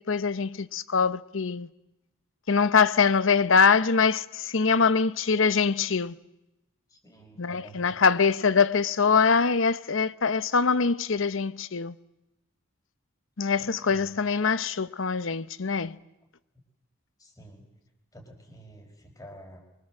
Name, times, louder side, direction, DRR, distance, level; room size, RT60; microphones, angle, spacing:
voice 1, 0.0-1.7 2.5-6.2 7.4-11.9 13.4-16.0, left 5 dB, 65° left, 0.8 m, -23 dB
voice 2, 6.9-8.0 13.6-14.1 17.2-17.6 18.1-19.6, equal, 15° left, 5.0 m, -49 dB
24.5 x 24.0 x 7.6 m
head